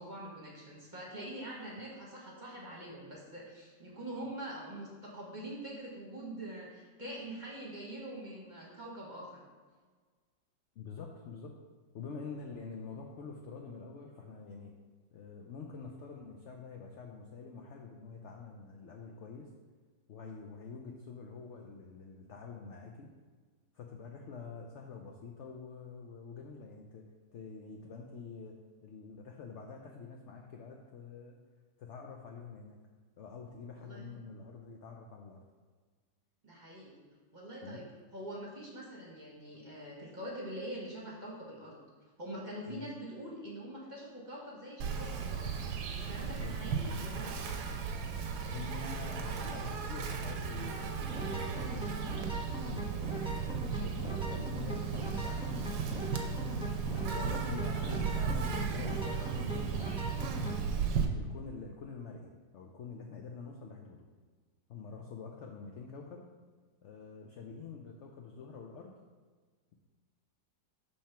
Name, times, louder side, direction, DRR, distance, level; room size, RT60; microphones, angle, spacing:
voice 1, 0.0-9.4 33.8-34.2 36.4-37.0 37.3-37.8 38.1-41.8 42.2-47.7 57.0-57.3 59.1-59.4, right 1 dB, 30° right, -4 dB, 1.0 m, -44 dB
voice 2, 10.8-11.5 11.9-14.7 15.1-19.5 20.1-23.1 23.7-27.1 27.3-28.6 28.8-31.4 31.8-32.8 33.2-35.4 37.6-37.8 42.7-42.8 46.2-46.5 48.4-51.9 52.7-53.5 53.8-56.6 57.0-60.1 61.1-64.1 64.7-66.3 66.8-69.0, left 5 dB, 80° left, 1 dB, 0.6 m, -46 dB
Insect, 44.8-61.1, right 6 dB, 75° right, 1.2 m, -35 dB
sound 1, 51.0-60.6, equal, 5° right, 0.6 m, -41 dB
5.5 x 3.5 x 5.6 m, 1.5 s
omnidirectional pair, 1.9 m